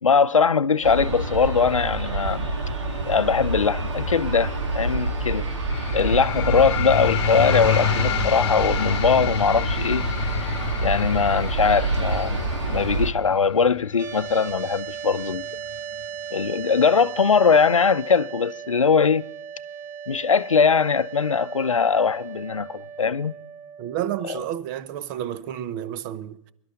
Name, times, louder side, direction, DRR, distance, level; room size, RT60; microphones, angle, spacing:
voice 1, 0.0-2.5 3.1-5.5 5.9-10.1 10.8-15.4 16.3-19.3 20.1-23.3, left 5 dB, 85° left, 0.6 m, -21 dB
Aircraft, 0.8-13.1, right 2 dB, 65° right, 3.3 m, -27 dB
sound 1, 5.7-16.7, left 14 dB, 50° left, 1.0 m, -30 dB
sound 2, 14.0-24.1, right 8 dB, 15° right, 0.5 m, -37 dB
voice 2, 23.8-26.5, right 11 dB, 35° right, 0.9 m, -31 dB
24.0 x 12.5 x 3.8 m
figure-of-eight pair, 115°, 16 cm